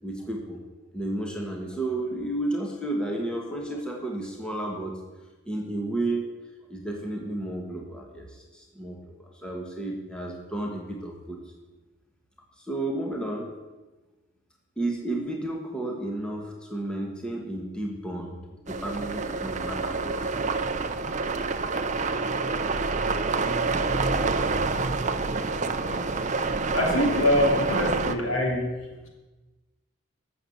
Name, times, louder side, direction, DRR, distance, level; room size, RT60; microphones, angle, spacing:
voice 1, 0.0-0.6 0.9-4.9 5.4-6.3 6.7-11.4 12.6-13.5 14.8-20.3, right 1 dB, 5° left, 0 dB, 1.6 m, -32 dB
sound 1, 18.7-28.1, right 3 dB, 35° right, 0.6 m, -27 dB
voice 2, 26.7-29.1, left 1 dB, 80° left, 0 dB, 3.0 m, -25 dB
12.0 x 7.1 x 7.9 m, 1.2 s
head